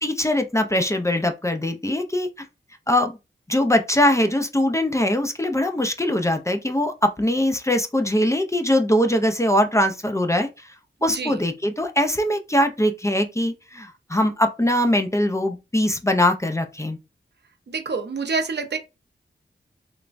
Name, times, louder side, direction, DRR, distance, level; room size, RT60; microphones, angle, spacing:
voice 1, 0.0-2.3 2.9-3.2 3.5-10.5 11.0-17.0, left 1 dB, 15° left, 0.4 m, -22 dB
voice 2, 11.0-11.4 17.7-18.8, right 4 dB, 65° right, 0.6 m, -27 dB
3.2 x 2.1 x 2.5 m
wide cardioid pair, 60°, 19 cm